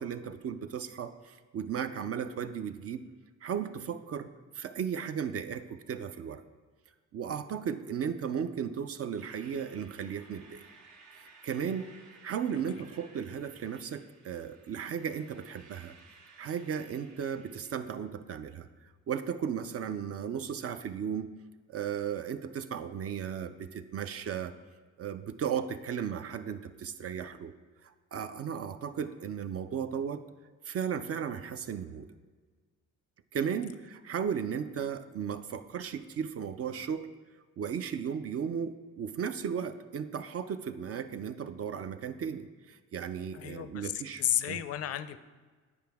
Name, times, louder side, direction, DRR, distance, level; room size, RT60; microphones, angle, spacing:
voice 1, 0.0-3.1 3.4-4.3 4.5-6.4 7.1-10.7 11.1-11.9 12.2-16.0 16.4-18.7 19.1-21.3 21.7-24.6 25.0-27.5 27.8-30.2 30.6-32.1 33.3-37.1 37.6-44.6, right 7 dB, 50° right, 9 dB, 0.5 m, -35 dB
sound 1, 9.2-17.7, right 4 dB, 75° right, 1.2 m, -57 dB
voice 2, 43.3-45.2, left 11 dB, 55° left, 12 dB, 0.5 m, -32 dB
9.5 x 4.8 x 3.5 m, 1.4 s
cardioid pair, 90°, 30 cm